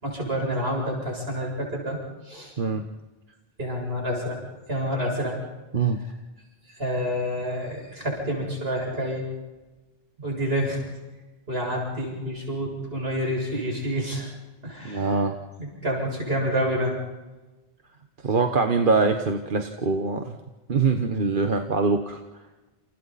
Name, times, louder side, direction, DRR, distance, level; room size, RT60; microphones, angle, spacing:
voice 1, 0.0-2.0 2.2-2.5 3.6-4.4 4.7-5.4 6.8-9.3 10.2-10.8 11.5-14.3 14.6-15.2 15.6-16.9, equal, 75° right, -2 dB, 7.8 m, -28 dB
voice 2, 14.8-15.3 18.2-20.4 20.7-22.2, right 4 dB, 55° right, 5 dB, 1.3 m, -23 dB
29.0 x 29.0 x 4.2 m, 1.2 s
omnidirectional pair, 1.0 m